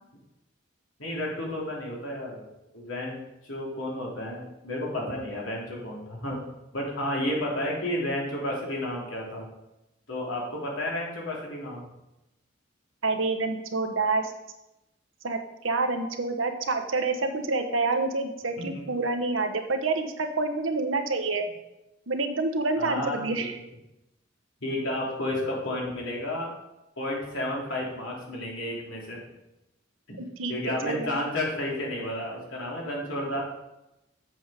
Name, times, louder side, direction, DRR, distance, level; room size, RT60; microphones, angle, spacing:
voice 1, 1.0-2.5 2.7-6.4 6.7-9.5 10.1-11.9 18.6-18.8 22.8-23.5 24.6-26.5 27.0-29.2 30.5-33.4, left 1 dB, 85° left, -3 dB, 2.8 m, -32 dB
voice 2, 13.0-14.3 15.2-21.5 22.1-23.6 30.2-30.5 30.8-31.1, right 3 dB, 90° right, 6 dB, 1.0 m, -28 dB
7.8 x 6.8 x 4.9 m, 0.92 s
head